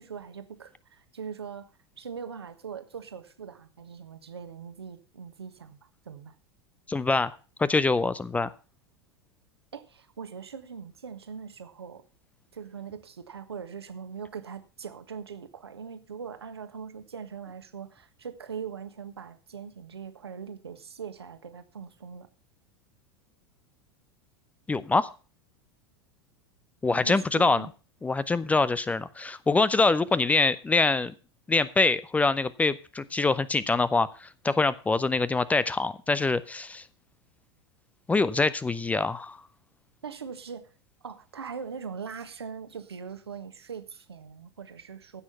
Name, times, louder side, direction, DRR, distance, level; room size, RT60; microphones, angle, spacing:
voice 1, 0.0-1.7 2.0-6.3 9.7-12.0 12.5-22.3 27.0-27.7 40.0-40.7 41.0-45.2, right 6 dB, 75° right, 10 dB, 1.4 m, -41 dB
voice 2, 6.9-8.5 24.7-25.1 26.8-27.7 28.0-31.1 31.5-36.8 38.1-39.4, left 3 dB, 10° left, 18 dB, 0.5 m, -25 dB
15.5 x 6.3 x 5.6 m, 0.35 s
figure-of-eight pair, 85°, 14 cm